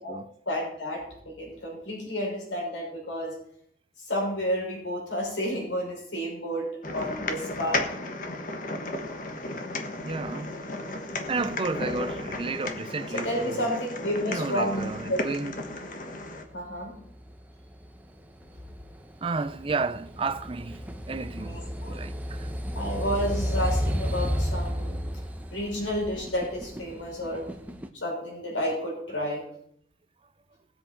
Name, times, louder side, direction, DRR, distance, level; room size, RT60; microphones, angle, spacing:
voice 1, 0.5-3.3 4.1-7.8 11.7-11.9 13.1-15.2 16.5-16.9 21.4-21.9 22.7-25.0 25.5-27.4 27.9-29.4, equal, 90° left, 6.1 m, -31 dB
sound 1, 6.8-16.4, left 2 dB, 45° left, 1.4 m, -34 dB
voice 2, 10.0-10.5 11.3-13.8 14.2-15.6 19.2-22.5, right 3 dB, 30° right, 0.5 m, -32 dB
sound 2, 16.5-27.9, equal, 10° right, 0.9 m, -33 dB
19.5 x 7.8 x 4.5 m
head